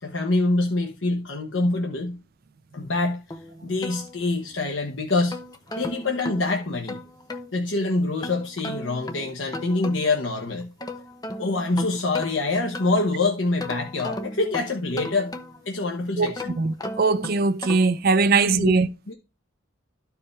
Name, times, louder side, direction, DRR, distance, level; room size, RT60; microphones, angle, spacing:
voice 1, 0.0-2.2 2.7-5.4 5.7-7.0 7.5-10.7 11.4-15.4 15.6-16.6 18.3-18.7 19.1-19.2, left 2 dB, 65° left, 1.1 m, -25 dB
sound 1, 3.3-4.6 5.1-7.5 8.2-10.2 10.6-13.1 13.6-15.8 16.3-18.0, left 2 dB, 20° left, 0.8 m, -36 dB
voice 2, 16.2-18.9, right 4 dB, 50° right, 0.5 m, -21 dB
13.0 x 4.8 x 3.3 m
head